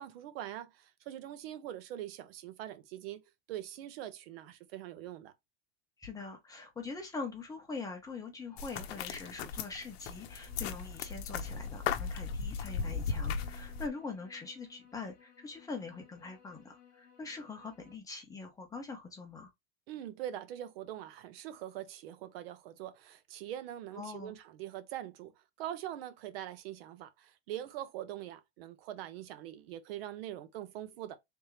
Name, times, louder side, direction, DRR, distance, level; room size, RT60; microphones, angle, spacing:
voice 1, 0.0-5.3 19.9-31.2, right 12 dB, 65° right, 0.8 m, -43 dB
voice 2, 6.0-19.5 23.9-24.3, left 4 dB, 10° left, 1.0 m, -43 dB
sound 1, 8.4-18.0, left 9 dB, 30° left, 1.1 m, -61 dB
sound 2, 8.6-13.9, left 6 dB, 75° left, 0.7 m, -37 dB
3.6 x 2.9 x 3.2 m
supercardioid pair, 145°, 31 cm